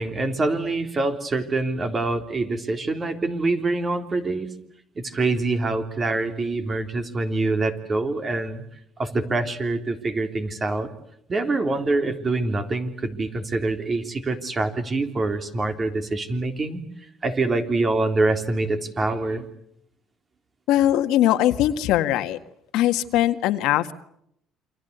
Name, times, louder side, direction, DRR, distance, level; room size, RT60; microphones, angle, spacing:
voice 1, 0.0-4.5 5.0-8.6 9.0-10.9 11.3-16.8 17.2-19.5, right 2 dB, 25° right, 7 dB, 3.6 m, -25 dB
voice 2, 20.7-22.4 22.7-24.0, left 13 dB, 75° left, 9 dB, 1.9 m, -21 dB
28.5 x 25.5 x 8.2 m, 0.73 s
cardioid pair, 130°, 0 cm